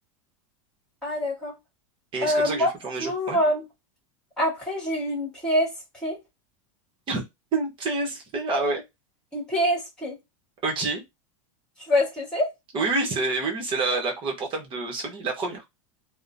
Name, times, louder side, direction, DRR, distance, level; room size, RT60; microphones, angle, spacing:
voice 1, 1.0-1.5 2.2-2.7 3.0-3.6 4.4-5.7 6.0-6.2 9.3-10.2 11.9-12.5, equal, 5° left, 1.7 m, -25 dB
voice 2, 2.1-3.4 7.1-7.2 7.5-8.8 10.6-11.0 12.7-15.6, right 3 dB, 30° right, 1.0 m, -28 dB
2.9 x 2.1 x 2.5 m
supercardioid pair, 135°, 17 cm